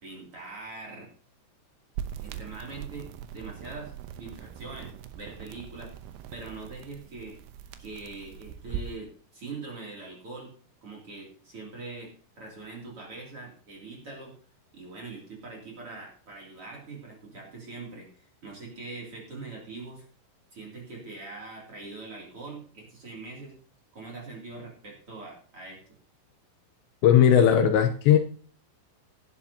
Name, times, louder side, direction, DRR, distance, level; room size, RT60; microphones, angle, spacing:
voice 1, 0.0-1.1 2.1-5.9 6.3-7.4 7.8-10.5 10.8-14.3 14.7-20.0 20.5-23.6 23.9-25.8, right 3 dB, 35° right, 0 dB, 3.1 m, -42 dB
sound 1, 2.0-9.0, right 9 dB, 80° right, 2.9 m, -41 dB
voice 2, 27.0-28.2, left 9 dB, 75° left, 7 dB, 2.8 m, -18 dB
18.5 x 10.5 x 2.8 m, 0.42 s
omnidirectional pair, 5.4 m